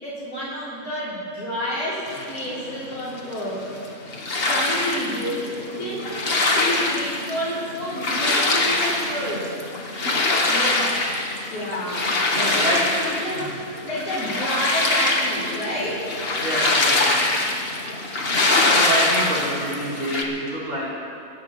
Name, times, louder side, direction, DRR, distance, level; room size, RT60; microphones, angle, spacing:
voice 1, 0.0-3.7 4.4-6.1 6.5-9.5 10.4-10.9 11.5-16.1, equal, 85° left, -9 dB, 4.2 m, -29 dB
sound 1, 2.1-20.2, left 2 dB, 45° left, 1.5 m, -24 dB
voice 2, 12.3-12.8 13.4-13.5 16.4-17.1 18.2-18.3 18.7-20.9, right 1 dB, 70° right, -7 dB, 5.4 m, -27 dB
26.5 x 14.0 x 3.1 m, 2.5 s
omnidirectional pair, 1.5 m